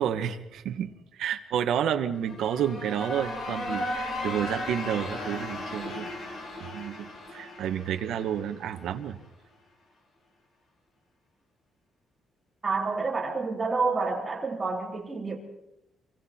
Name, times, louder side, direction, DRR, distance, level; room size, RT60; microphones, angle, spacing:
voice 1, 0.0-6.1 6.6-9.2, right 9 dB, 80° right, 6 dB, 1.3 m, -30 dB
sound 1, 2.2-8.9, left 1 dB, 45° left, 4.8 m, -36 dB
voice 2, 12.6-15.4, right 4 dB, 20° right, -2 dB, 3.5 m, -28 dB
27.0 x 24.5 x 4.4 m, 0.89 s
cardioid pair, 165°, 0 cm